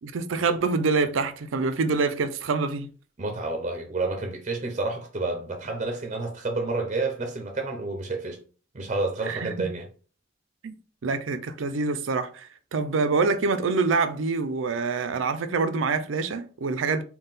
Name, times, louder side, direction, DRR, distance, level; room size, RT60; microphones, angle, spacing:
voice 1, 0.0-2.9 9.3-9.7 10.6-10.8 11.0-17.0, right 4 dB, 85° right, 0.5 m, -26 dB
voice 2, 3.2-8.4 8.7-9.9, right 3 dB, 35° right, 0.5 m, -29 dB
3.7 x 2.3 x 3.9 m
head